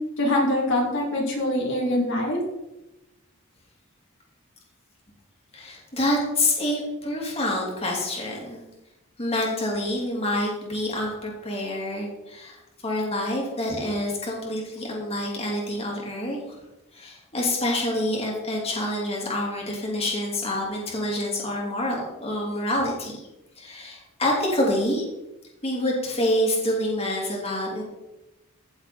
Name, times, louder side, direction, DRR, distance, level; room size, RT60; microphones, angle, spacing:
voice 1, 0.2-2.4, left 1 dB, 60° left, -3 dB, 2.8 m, -24 dB
voice 2, 5.5-8.6 9.2-16.6 16.9-23.2 23.6-25.0 25.6-27.8, left 1 dB, 30° left, -3 dB, 3.1 m, -27 dB
15.5 x 7.2 x 4.3 m, 0.95 s
head